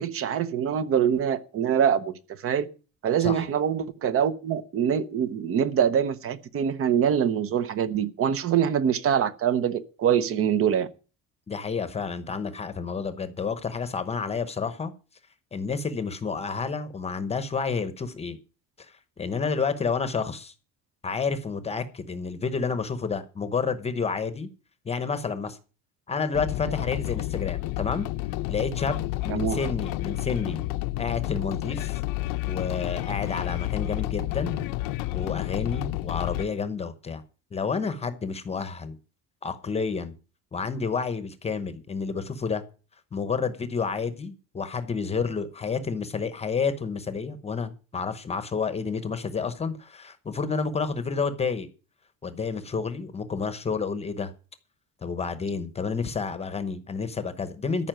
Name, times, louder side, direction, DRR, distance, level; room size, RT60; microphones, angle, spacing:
voice 1, 0.0-2.7 3.0-10.9 29.3-29.6, right 8 dB, 40° right, 0.8 m, -24 dB
voice 2, 11.5-14.9 15.5-18.4 19.2-20.5 21.0-24.5 24.8-25.6 26.1-28.1 28.5-30.6 31.0-32.0 32.5-34.6 35.1-37.2 37.5-39.0 39.4-40.1 40.5-42.6 43.1-51.7 52.2-54.3 55.0-57.9, left 5 dB, 20° left, 0.9 m, -30 dB
sound 1, 26.3-36.5, left 17 dB, 85° left, 0.8 m, -30 dB
14.0 x 5.6 x 9.0 m
cardioid pair, 175°, 34 cm